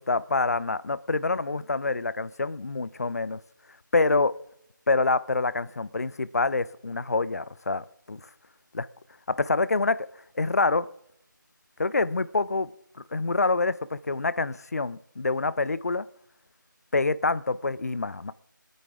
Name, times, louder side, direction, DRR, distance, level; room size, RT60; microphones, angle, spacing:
voice 1, 0.0-3.4 3.9-4.3 4.9-8.3 8.7-8.9 9.3-10.1 10.4-10.9 11.8-12.7 13.1-16.0 16.9-18.3, left 3 dB, 50° left, 0.6 m, -26 dB
25.0 x 9.4 x 3.6 m
figure-of-eight pair, 165°, 11 cm